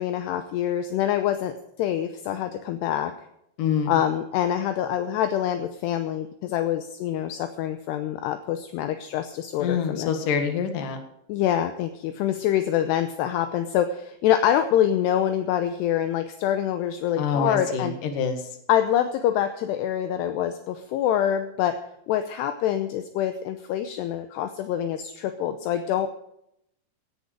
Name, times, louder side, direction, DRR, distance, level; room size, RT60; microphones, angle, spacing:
voice 1, 0.0-3.1 3.9-10.1 11.3-17.9 18.7-21.8 22.1-26.1, left 10 dB, 80° left, 8 dB, 2.7 m, -25 dB
voice 2, 3.6-3.9 9.6-11.0 17.2-18.4, left 6 dB, 55° left, 6 dB, 2.9 m, -26 dB
17.0 x 10.5 x 5.1 m, 0.78 s
omnidirectional pair, 5.3 m